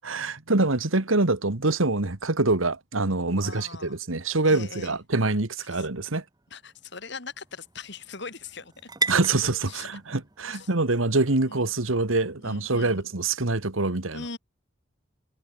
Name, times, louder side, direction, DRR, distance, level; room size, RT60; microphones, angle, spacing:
voice 1, 0.0-6.2 9.1-14.2, right 2 dB, 85° right, 1.9 m, -25 dB
voice 2, 3.4-4.0 4.4-5.0 5.7-5.9 6.5-8.7 9.7-9.9 10.5-10.7 11.5-11.6 12.4-13.1 14.1-14.4, left 4 dB, 60° left, 3.2 m, -40 dB
sound 1, 5.4-13.2, right 4 dB, 20° right, 1.2 m, -39 dB
head